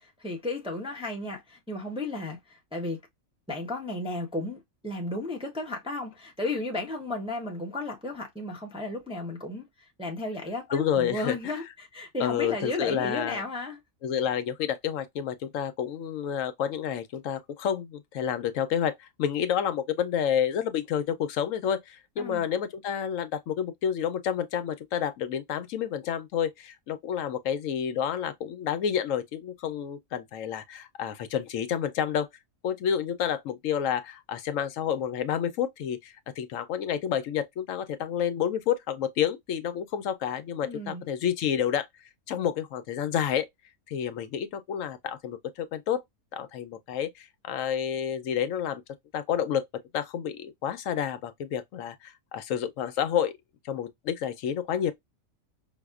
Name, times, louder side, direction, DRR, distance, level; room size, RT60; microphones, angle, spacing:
voice 1, 0.0-3.0 3.5-13.8 22.2-22.4 40.6-41.0, left 2 dB, 5° right, 0.5 m, -34 dB
voice 2, 10.7-11.4 12.2-13.4 14.0-32.3 32.6-41.9 42.3-43.5 43.9-46.0 46.3-48.8 49.1-49.7 49.9-53.3 53.6-54.9, left 9 dB, 75° left, 1.0 m, -29 dB
5.5 x 2.0 x 2.3 m
omnidirectional pair, 1.4 m